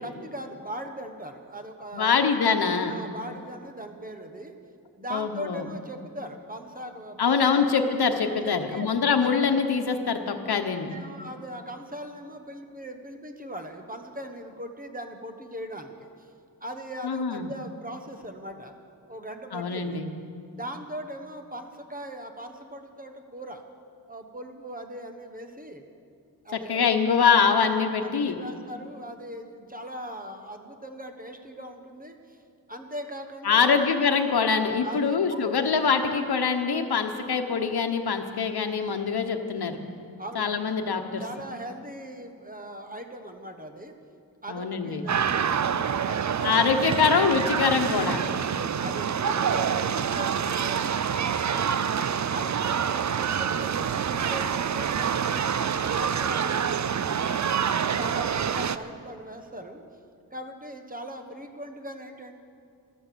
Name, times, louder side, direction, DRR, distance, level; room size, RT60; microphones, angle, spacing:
voice 1, 0.0-2.2 2.9-4.5 5.0-7.7 8.4-8.9 9.2-9.3 10.8-16.3 16.6-18.7 19.1-20.0 20.5-23.6 24.1-25.8 26.4-27.1 28.0-32.4 32.7-33.8 34.8-35.9 40.2-40.5 41.2-43.9 44.4-46.8 48.8-51.8 52.3-57.6 57.9-59.8 60.3-62.4, right 1 dB, 20° right, 5 dB, 1.1 m, -40 dB
voice 2, 1.9-3.0 5.1-5.6 7.2-10.9 17.0-17.5 19.5-20.1 26.5-28.4 33.4-39.8 40.3-41.2 44.5-45.0 46.4-48.2, left 5 dB, 75° left, 6 dB, 1.1 m, -24 dB
sound 1, 45.1-58.8, right 7 dB, 50° right, 0.5 m, -26 dB
13.5 x 12.5 x 6.8 m, 2.4 s
wide cardioid pair, 115°, 38 cm